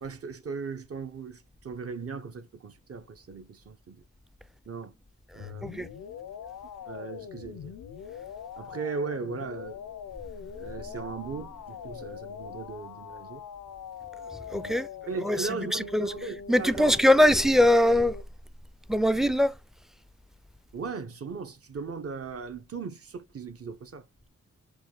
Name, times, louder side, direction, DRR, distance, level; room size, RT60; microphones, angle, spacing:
voice 1, 0.0-4.0 4.7-4.9 5.3-5.8 6.8-7.7 8.6-9.8 10.6-13.4 14.5-17.0 20.7-24.0, right 5 dB, 50° right, 0.8 m, -38 dB
sound 1, 5.4-18.2, left 7 dB, 85° left, 0.5 m, -42 dB
voice 2, 14.5-14.9 15.2-16.1 16.5-18.2 18.9-19.5, left 1 dB, ahead, 0.3 m, -22 dB
4.8 x 2.3 x 3.8 m
cardioid pair, 65°, 31 cm